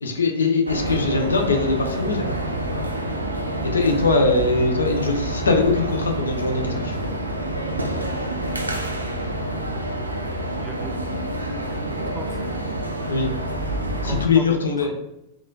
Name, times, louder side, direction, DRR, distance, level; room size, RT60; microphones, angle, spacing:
voice 1, 0.0-2.4 2.7-2.8 3.7-7.0 13.1-13.3 14.0-14.9, left 3 dB, 75° left, 4 dB, 0.4 m, -21 dB
sound 1, 0.7-14.3, right 1 dB, 85° right, 0.3 m, -27 dB
voice 2, 10.6-11.0 11.7-12.4 14.0-14.9, right 2 dB, 5° right, 1 dB, 0.5 m, -37 dB
3.8 x 2.2 x 2.3 m, 0.86 s
figure-of-eight pair, 90°, 0 cm